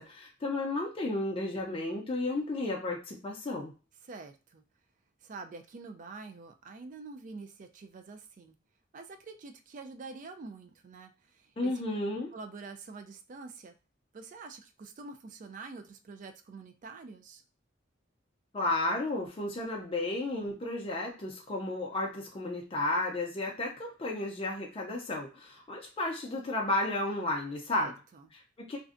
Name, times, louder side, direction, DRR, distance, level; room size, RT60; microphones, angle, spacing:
voice 1, 0.0-3.7 11.6-12.3 18.5-27.9 28.3-28.8, left 2 dB, 30° left, 0 dB, 0.4 m, -33 dB
voice 2, 4.1-4.6 5.2-8.5 8.9-11.7 12.3-13.7 14.1-17.4 27.7-28.3, right 4 dB, 40° right, 7 dB, 0.3 m, -46 dB
2.5 x 2.1 x 2.4 m, 0.33 s
head